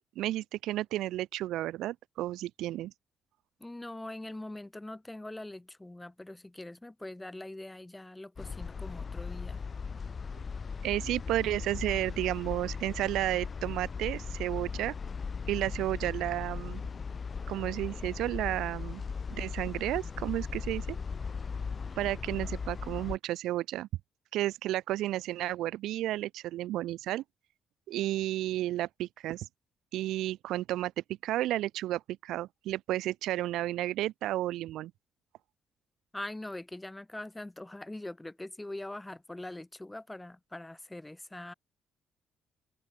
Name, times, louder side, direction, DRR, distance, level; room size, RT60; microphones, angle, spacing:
voice 1, 0.2-2.9 10.8-14.9 15.5-16.8 17.5-19.0 19.3-21.0 22.0-23.9 24.3-27.2 27.9-29.5 29.9-30.9 31.2-34.9, right 14 dB, 85° right, 0.9 m, -32 dB
voice 2, 3.6-9.6 36.1-41.5, left 1 dB, 10° left, 4.3 m, -42 dB
sound 1, 8.4-23.2, left 5 dB, 40° left, 2.5 m, -38 dB
cardioid pair, 90°, 0 cm